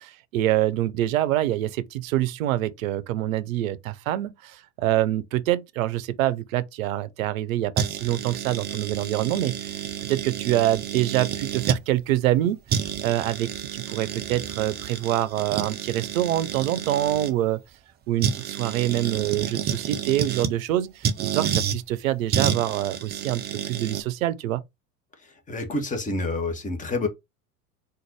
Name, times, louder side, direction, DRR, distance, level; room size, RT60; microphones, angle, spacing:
voice 1, 0.0-9.8 10.1-17.6 18.1-24.6, right 13 dB, 60° right, 0.6 m, -25 dB
sound 1, 7.8-11.8 12.4-12.5 12.7-17.3 18.2-20.6 21.0-21.8 22.3-24.0, right 8 dB, 20° right, 0.5 m, -29 dB
voice 2, 25.2-27.1, left 2 dB, 15° left, 1.2 m, -28 dB
3.9 x 2.6 x 4.6 m
figure-of-eight pair, 80°, 45 cm